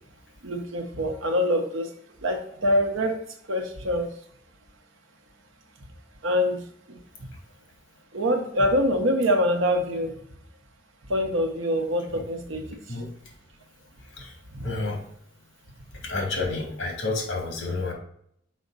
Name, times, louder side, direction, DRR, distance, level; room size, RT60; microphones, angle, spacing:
voice 1, 0.4-1.9 2.2-3.2 3.5-4.1 6.2-6.6 8.1-10.1 11.1-12.8 14.5-14.6, equal, 75° right, 5 dB, 1.1 m, -24 dB
voice 2, 14.1-15.0 15.9-17.9, left 3 dB, 60° left, 0 dB, 2.5 m, -30 dB
6.2 x 5.0 x 4.1 m, 0.69 s
head